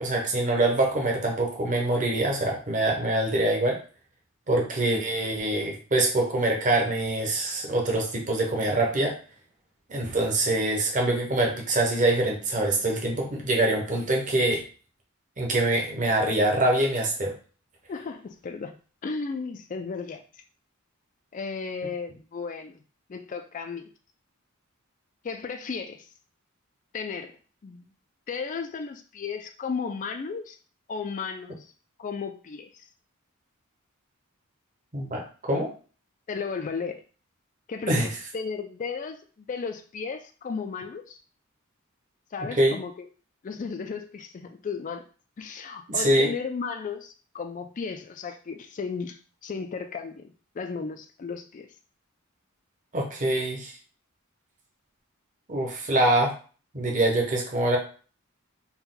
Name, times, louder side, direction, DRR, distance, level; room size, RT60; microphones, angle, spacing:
voice 1, 0.0-3.8 4.5-9.2 9.9-14.6 15.4-17.3 34.9-35.7 37.9-38.1 42.6-42.8 45.9-46.3 52.9-53.8 55.5-56.3 56.7-57.8, right 1 dB, 35° right, 0 dB, 0.9 m, -24 dB
voice 2, 17.9-18.8 19.0-20.2 21.3-22.8 23.1-23.9 25.2-26.1 26.9-27.4 27.6-27.9 28.3-30.6 30.9-31.7 32.0-32.9 36.3-37.0 37.7-41.2 42.3-43.1 43.4-45.0 45.4-51.7, left 5 dB, 35° left, 6 dB, 0.3 m, -34 dB
4.3 x 2.3 x 3.8 m, 0.39 s
head